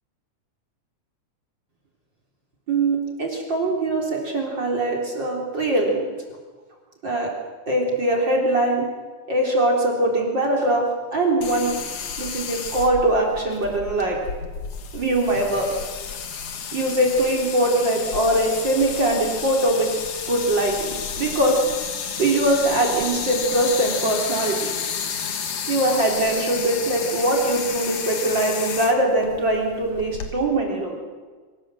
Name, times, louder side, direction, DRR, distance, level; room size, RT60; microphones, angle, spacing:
voice 1, 2.7-6.1 7.0-7.3 7.7-8.8 9.3-11.7 12.2-14.2 14.9-15.7 16.7-19.9 20.3-21.6 22.2-24.7 25.7-31.0, right 1 dB, 35° right, -1 dB, 4.1 m, -22 dB
sound 1, 11.4-30.3, left 6 dB, 60° left, 2.8 m, -31 dB
25.0 x 18.5 x 7.7 m, 1.4 s
omnidirectional pair, 3.4 m